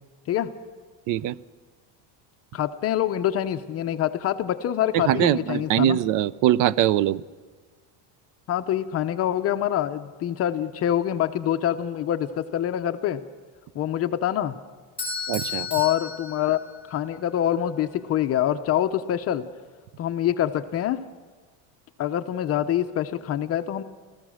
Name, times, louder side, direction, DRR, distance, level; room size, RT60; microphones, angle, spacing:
voice 1, 2.5-6.0 8.5-13.2 13.7-14.5 15.7-16.6 16.9-19.4 20.0-21.0 22.0-23.8, left 11 dB, 40° left, 9 dB, 0.7 m, -25 dB
voice 2, 4.9-7.2 15.3-15.7, right 12 dB, 55° right, 20 dB, 0.5 m, -22 dB
Bell / Doorbell, 15.0-17.1, left 4 dB, 15° left, 5.7 m, -33 dB
30.0 x 14.5 x 6.3 m, 1.4 s
cardioid pair, 170°, 39 cm